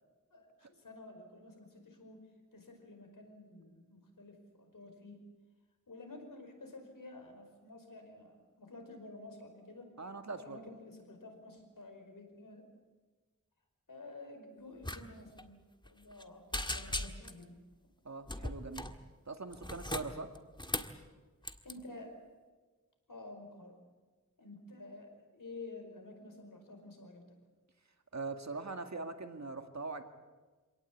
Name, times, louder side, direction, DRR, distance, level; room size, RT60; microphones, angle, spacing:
voice 1, 0.3-5.3 5.9-9.9 10.4-12.7 13.9-15.6 15.8-17.6 21.6-22.2 23.1-23.8 24.4-27.4, left 2 dB, 85° left, 4 dB, 5.0 m, -51 dB
voice 2, 10.0-10.6 18.0-18.9 19.3-20.3 28.1-30.0, right 3 dB, 60° right, 7 dB, 2.1 m, -42 dB
sound 1, 14.8-15.0 15.3-15.4 15.8-16.2 16.5-17.4 18.3-19.0 19.5-21.0 21.4-21.7, left 1 dB, 15° left, 1.6 m, -38 dB
26.0 x 18.0 x 8.6 m, 1.3 s
wide cardioid pair, 60°, 32 cm